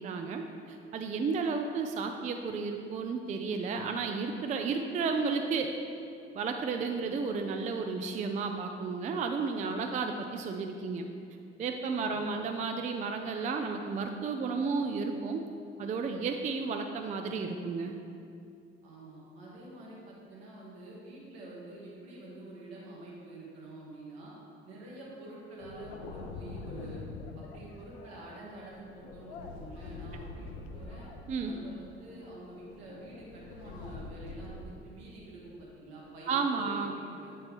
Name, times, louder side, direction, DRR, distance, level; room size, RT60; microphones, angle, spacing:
voice 1, 0.0-5.7 6.3-11.1 11.6-15.4 15.8-17.9 31.3-31.5 36.3-36.9, right 4 dB, 25° right, 5 dB, 0.4 m, -32 dB
voice 2, 18.8-24.3 24.6-27.0 27.3-31.1 31.4-37.3, right 2 dB, 70° right, -5 dB, 1.5 m, -47 dB
sound 1, 25.6-34.6, left 3 dB, 75° left, 0.5 m, -45 dB
7.6 x 4.2 x 3.5 m, 2.5 s
figure-of-eight pair, 50°, 32 cm